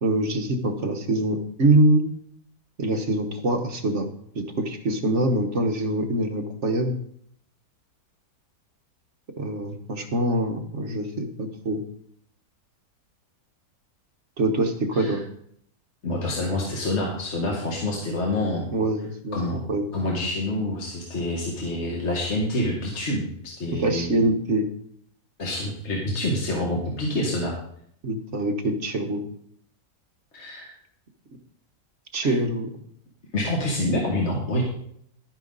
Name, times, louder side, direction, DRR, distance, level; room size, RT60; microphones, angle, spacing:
voice 1, 0.0-2.0 2.8-4.1 4.3-6.9 9.4-11.8 14.4-15.2 18.7-19.4 19.7-19.9 23.7-24.7 28.0-29.2 32.1-32.7, right 2 dB, 50° right, 5 dB, 1.3 m, -24 dB
voice 2, 16.0-18.7 19.3-19.6 19.9-24.1 25.4-27.6 30.3-30.7 32.2-32.4 33.3-34.6, left 1 dB, 45° left, -2 dB, 1.9 m, -27 dB
12.0 x 9.1 x 4.0 m, 0.67 s
omnidirectional pair, 1.7 m